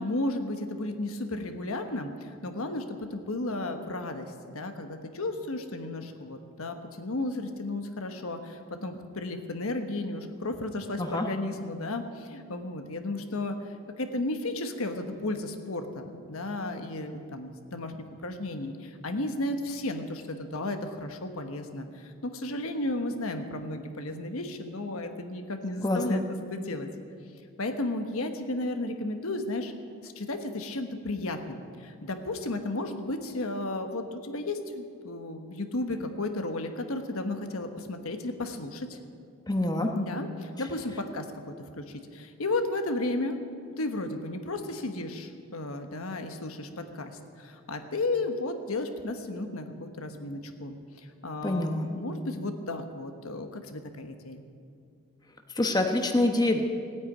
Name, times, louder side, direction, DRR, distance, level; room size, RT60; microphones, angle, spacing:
voice 1, 0.0-13.6 14.0-26.9 27.6-29.7 30.0-39.0 39.9-43.4 43.8-54.4, left 2 dB, 75° left, 6 dB, 1.2 m, -34 dB
voice 2, 25.8-26.2 39.5-39.9 51.4-51.9 55.6-56.6, left 1 dB, 20° left, 4 dB, 1.0 m, -25 dB
16.5 x 9.4 x 9.3 m, 2.4 s
head